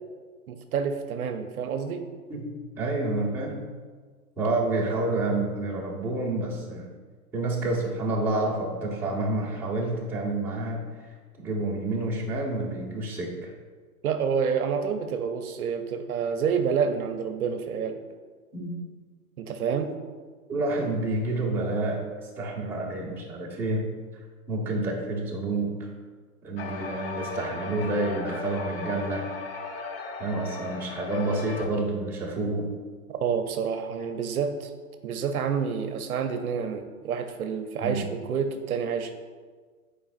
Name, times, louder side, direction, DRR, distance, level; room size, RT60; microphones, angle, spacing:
voice 1, 0.5-2.0 14.0-18.0 19.4-19.9 20.8-20.9 33.2-34.7 35.0-39.1, right 6 dB, 70° right, 7 dB, 0.7 m, -28 dB
voice 2, 2.3-3.6 4.4-6.9 7.3-10.8 11.4-13.5 18.5-18.8 20.5-22.0 22.4-23.9 24.5-25.7 26.4-29.2 30.2-32.7 37.8-38.1, right 2 dB, 5° right, -8 dB, 1.0 m, -29 dB
sound 1, 26.6-31.7, left 4 dB, 40° left, 0.8 m, -37 dB
8.8 x 4.7 x 2.5 m, 1.5 s
hypercardioid pair, 145°, 46 cm